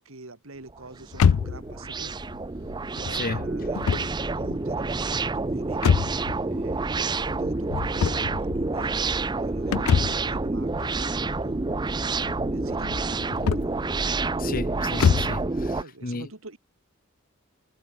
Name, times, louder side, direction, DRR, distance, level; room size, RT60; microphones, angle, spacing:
voice 1, 0.0-2.3 2.6-6.0 6.5-11.6 12.5-13.9 15.4-16.6, right 2 dB, 70° right, 2.2 m, -46 dB
sound 1, 0.7-15.8, right 3 dB, 20° right, 0.5 m, -28 dB
sound 2, 1.1-15.5, left 6 dB, 80° left, 0.4 m, -28 dB
voice 2, 3.1-3.5 14.4-16.3, left 3 dB, 40° left, 0.9 m, -34 dB
head